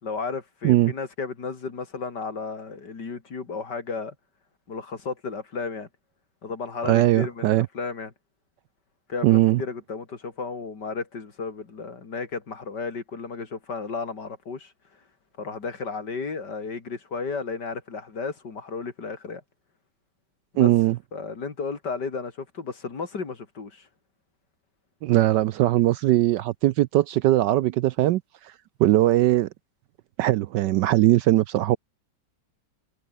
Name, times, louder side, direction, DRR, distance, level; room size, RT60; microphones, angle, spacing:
voice 1, 0.0-4.1 4.7-5.9 6.4-8.1 9.1-14.7 15.4-19.4 20.5-20.7 21.1-23.9, left 4 dB, 60° left, 3.5 m, -33 dB
voice 2, 6.8-7.7 9.2-9.6 20.6-21.0 25.0-28.2 28.8-29.5 30.2-31.8, right 15 dB, 75° right, 1.1 m, -20 dB
omnidirectional pair, 2.1 m